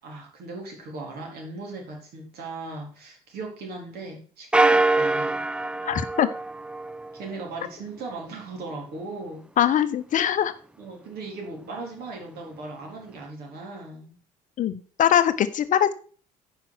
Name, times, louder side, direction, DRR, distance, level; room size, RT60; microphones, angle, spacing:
voice 1, 0.0-5.4 7.1-9.4 10.8-14.2, right 3 dB, 50° right, 1 dB, 4.1 m, -38 dB
sound 1, 4.5-7.2, right 2 dB, 5° right, 0.5 m, -23 dB
voice 2, 5.8-6.3 9.6-10.5 14.6-15.9, left 10 dB, 40° left, 12 dB, 1.0 m, -22 dB
9.8 x 5.8 x 6.2 m, 0.40 s
figure-of-eight pair, 55°, 20 cm